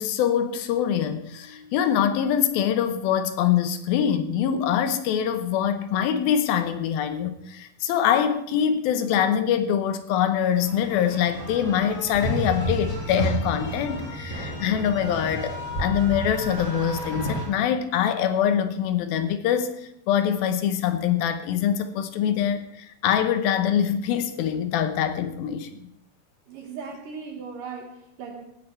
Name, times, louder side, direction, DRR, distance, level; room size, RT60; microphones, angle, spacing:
voice 1, 0.0-25.9, left 9 dB, 75° left, 9 dB, 2.6 m, -24 dB
sound 1, 10.4-17.4, right 1 dB, 25° left, 4.9 m, -31 dB
voice 2, 26.5-28.4, right 5 dB, 65° right, 3 dB, 2.5 m, -38 dB
16.5 x 9.7 x 4.5 m, 0.78 s
omnidirectional pair, 4.6 m